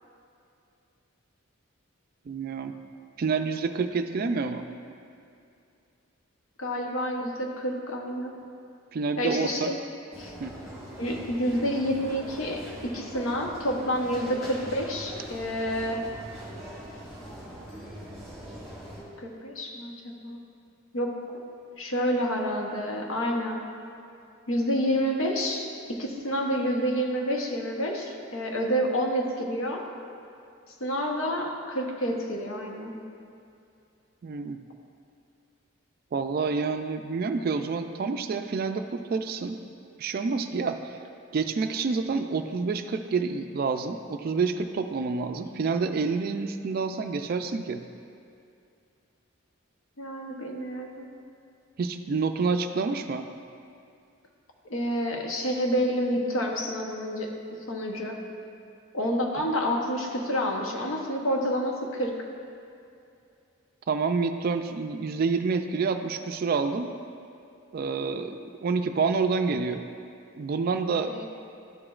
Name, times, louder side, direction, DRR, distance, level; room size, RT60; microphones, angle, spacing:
voice 1, 2.3-2.7 3.2-4.6 8.9-9.7 10.4-10.6 34.2-34.6 36.1-39.6 40.0-41.0 41.3-47.8 51.8-53.3 63.9-66.9 67.7-69.8 70.4-71.1, right 4 dB, 45° right, 8 dB, 0.3 m, -28 dB
voice 2, 6.6-8.3 9.2-9.8 10.2-10.3 11.0-16.0 19.2-19.9 20.2-20.4 20.9-21.1 21.8-23.6 24.5-29.8 30.8-32.9 50.0-51.1 54.7-57.3 57.7-58.2 58.9-62.1 71.1-71.2, equal, 75° left, 1 dB, 0.9 m, -28 dB
sound 1, 10.1-19.0, equal, ahead, 1.6 m, -42 dB
12.0 x 4.9 x 2.4 m, 2.5 s
head